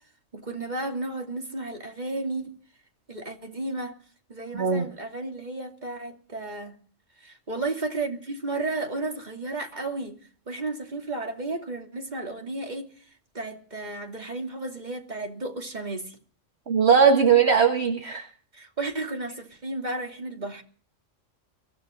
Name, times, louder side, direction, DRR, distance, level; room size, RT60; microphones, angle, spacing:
voice 1, 0.3-2.5 3.1-3.9 4.3-6.8 7.2-10.2 10.5-12.9 13.3-16.2 18.5-20.6, right 2 dB, 35° right, 2.9 m, -33 dB
voice 2, 16.7-18.3, right 6 dB, 55° right, 1.8 m, -19 dB
24.0 x 15.5 x 3.8 m
omnidirectional pair, 1.3 m